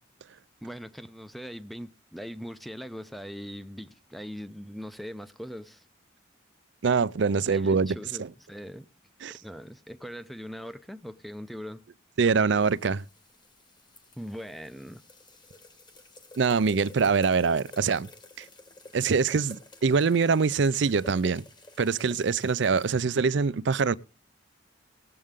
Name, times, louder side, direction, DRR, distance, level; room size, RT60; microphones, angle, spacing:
voice 1, 0.6-5.8 7.4-8.9 9.3-11.8 14.2-15.0, equal, ahead, 0.5 m, -41 dB
voice 2, 6.8-8.3 9.2-9.4 12.2-13.0 16.4-18.1 18.4-18.5 18.9-21.4 21.8-23.9, right 5 dB, 65° right, 0.5 m, -24 dB
sound 1, 12.6-22.9, left 2 dB, 25° left, 1.4 m, -52 dB
19.0 x 7.7 x 3.6 m
head